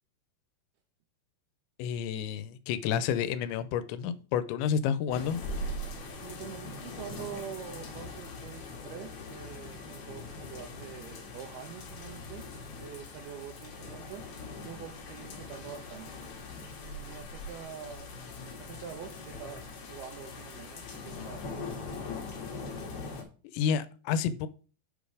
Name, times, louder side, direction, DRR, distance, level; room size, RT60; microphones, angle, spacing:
voice 1, 1.8-5.4 23.5-24.5, left 8 dB, 90° left, 2.9 m, -30 dB
sound 1, 5.1-23.2, left 2 dB, 55° left, 2.3 m, -42 dB
voice 2, 6.2-12.5 12.8-14.3 14.6-16.1 16.8-18.1 18.6-21.9, right 8 dB, 80° right, 2.4 m, -45 dB
7.2 x 5.2 x 4.9 m
omnidirectional pair, 5.1 m